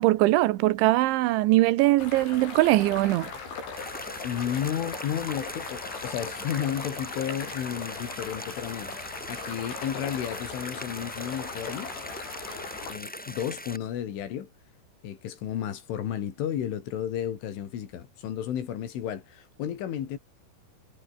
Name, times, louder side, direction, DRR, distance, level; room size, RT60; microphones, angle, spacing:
voice 1, 0.0-3.3, right 18 dB, 80° right, 3.4 m, -21 dB
sound 1, 2.0-12.9, left 5 dB, 70° left, 10.0 m, -39 dB
sound 2, 3.8-13.8, equal, ahead, 7.6 m, -41 dB
voice 2, 4.2-8.9 9.3-11.9 12.9-14.5 15.0-20.2, left 10 dB, 90° left, 5.4 m, -32 dB
omnidirectional pair, 5.4 m